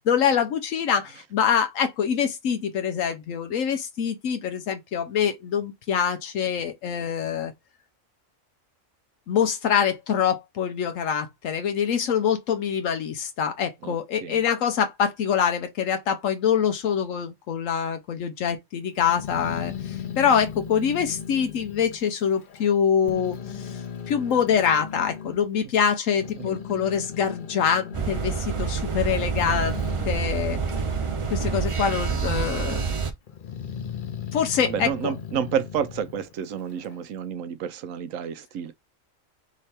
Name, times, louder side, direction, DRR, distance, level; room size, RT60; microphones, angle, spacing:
voice 1, 0.0-7.5 9.3-30.6 31.3-32.8 34.3-35.1, left 7 dB, 85° left, 1.1 m, -25 dB
voice 2, 13.8-14.4 26.4-26.6 34.6-38.7, right 8 dB, 85° right, 1.1 m, -30 dB
Growling, 19.0-22.7 23.0-25.4 25.9-31.8 32.1-32.8 33.3-37.0, left 7 dB, 50° left, 0.7 m, -38 dB
sound 1, 27.9-33.1, right 5 dB, 50° right, 0.4 m, -27 dB
3.7 x 3.3 x 4.3 m
omnidirectional pair, 1.3 m